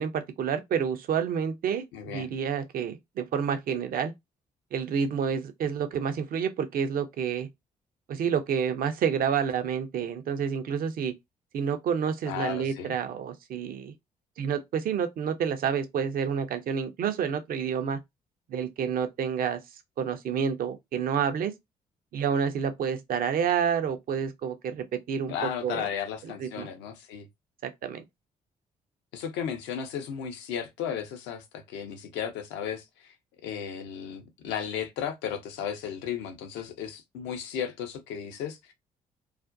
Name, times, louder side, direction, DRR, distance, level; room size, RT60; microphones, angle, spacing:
voice 1, 0.0-4.1 4.7-7.5 8.1-11.2 11.5-13.9 14.4-18.0 18.5-19.6 20.0-21.5 22.1-25.3 25.6-25.9 26.4-26.7 27.6-28.0, right 7 dB, 50° right, 0.5 m, -29 dB
voice 2, 1.9-2.3 12.3-12.9 25.3-27.3 29.1-33.1 33.4-38.7, left 8 dB, 65° left, 0.6 m, -35 dB
2.4 x 2.1 x 2.4 m
figure-of-eight pair, 45°, 20 cm